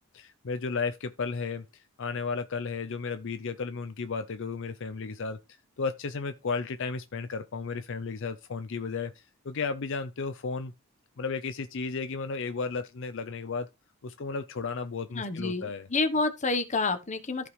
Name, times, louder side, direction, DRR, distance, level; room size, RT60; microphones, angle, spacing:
voice 1, 0.1-10.7 11.2-13.7 14.0-15.9, left 4 dB, 60° left, 0.6 m, -34 dB
voice 2, 15.1-17.5, left 3 dB, 35° left, 1.0 m, -29 dB
14.0 x 5.1 x 3.2 m
head